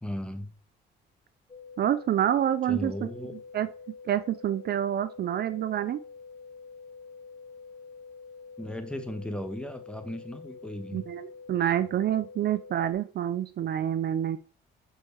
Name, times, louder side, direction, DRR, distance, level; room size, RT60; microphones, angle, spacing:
voice 1, 0.0-0.5 2.7-3.3 8.6-11.0, left 1 dB, 5° left, 7 dB, 1.0 m, -36 dB
sound 1, 1.5-12.9, left 5 dB, 25° left, 1.7 m, -47 dB
voice 2, 1.8-3.1 3.5-3.7 4.1-6.0 10.9-14.4, right 10 dB, 55° right, 13 dB, 0.4 m, -27 dB
6.1 x 5.4 x 3.1 m, 0.37 s
cardioid pair, 90°, 20 cm